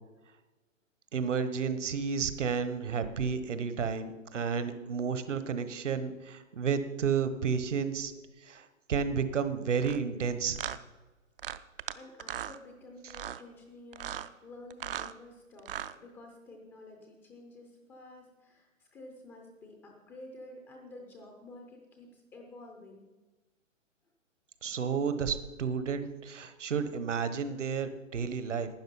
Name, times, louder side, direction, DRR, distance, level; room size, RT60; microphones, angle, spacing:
voice 1, 1.1-8.1 8.5-10.6 24.6-28.7, right 6 dB, 65° right, 11 dB, 1.3 m, -31 dB
sound 1, 9.8-10.0 10.6-10.8 11.4-11.9 12.2-12.6 13.1-13.4 13.9-14.3 14.7-15.1 15.6-15.9, right 10 dB, 45° right, 0.5 m, -38 dB
voice 2, 11.4-23.1, left 2 dB, 5° left, 2 dB, 0.5 m, -51 dB
12.0 x 9.3 x 5.5 m, 1.2 s
figure-of-eight pair, 130°, 39 cm